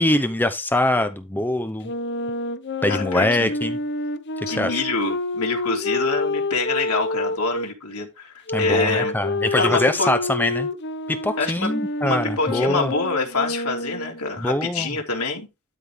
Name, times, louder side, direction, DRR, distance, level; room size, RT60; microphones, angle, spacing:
voice 1, 0.0-1.9 2.8-3.8 4.5-4.8 8.5-10.7 11.1-12.9 14.4-14.9, left 1 dB, 10° left, 0.7 m, -23 dB
Wind instrument woodwind instrument, 1.8-7.7 8.5-14.2, left 2 dB, 55° left, 0.8 m, -28 dB
voice 2, 2.9-3.5 4.5-8.3 8.6-9.1 9.5-10.1 11.4-11.7 12.0-15.5, left 3 dB, 90° left, 3.5 m, -25 dB
12.5 x 5.4 x 3.5 m
head